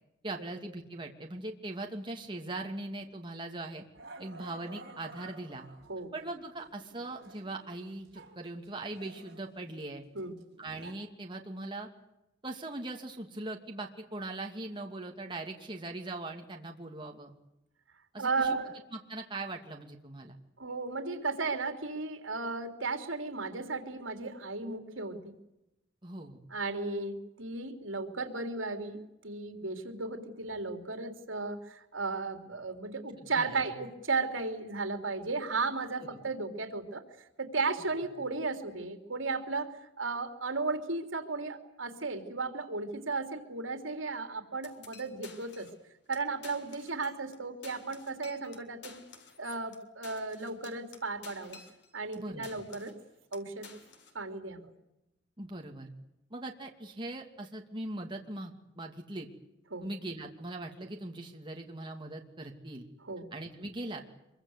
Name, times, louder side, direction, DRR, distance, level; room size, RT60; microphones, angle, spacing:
voice 1, 0.2-3.8 4.2-5.7 6.1-10.0 10.6-11.9 12.4-17.3 18.1-18.6 18.9-20.3 26.0-26.4 33.2-33.7 36.1-36.2 52.1-52.5 55.4-55.9 56.3-59.3 59.8-62.9 63.3-64.0, right 2 dB, 25° right, 1 dB, 2.6 m, -40 dB
Growling, 3.0-3.2 3.9-6.0 6.6-8.4 8.6-10.9, right 2 dB, 55° right, 6.0 m, -52 dB
voice 2, 18.2-18.8 20.6-25.3 26.5-37.0 37.4-45.7 46.1-49.0 49.4-51.6 51.9-52.9 53.3-53.7 54.1-54.7 59.7-59.9 63.1-63.3, right 3 dB, 80° right, 6 dB, 3.6 m, -35 dB
sound 1, 44.6-45.8 46.1-46.2 46.4-47.4 47.6-52.2 52.4-53.0 53.3-54.2, left 5 dB, 60° left, 3.5 m, -52 dB
25.5 x 23.5 x 8.2 m, 0.89 s
head